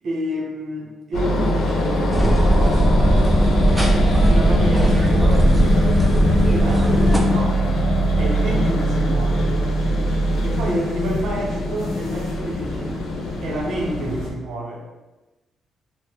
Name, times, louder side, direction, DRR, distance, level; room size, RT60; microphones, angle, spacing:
voice 1, 0.0-3.3 4.3-5.7 6.5-7.6 8.2-9.5 10.4-13.0 13.4-14.9, equal, 65° right, -1 dB, 0.7 m, -29 dB
sound 1, 1.1-14.3, equal, 75° left, 0.7 m, -21 dB
sound 2, 2.1-7.2, right 1 dB, 10° right, 0.5 m, -18 dB
4.0 x 2.0 x 2.7 m, 1.1 s
cardioid pair, 90°, 0 cm